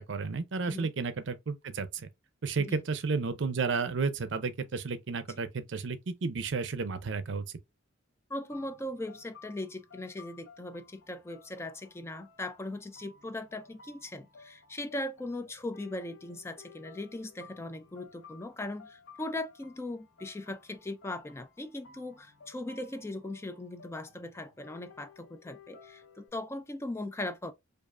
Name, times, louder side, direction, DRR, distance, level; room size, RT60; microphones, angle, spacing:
voice 1, 0.1-1.9 2.4-7.4, right 4 dB, 70° right, 0.6 m, -32 dB
voice 2, 8.3-27.5, left 1 dB, 15° left, 0.3 m, -39 dB
sound 1, 8.5-26.3, left 5 dB, 80° left, 1.0 m, -56 dB
4.8 x 2.5 x 2.4 m
head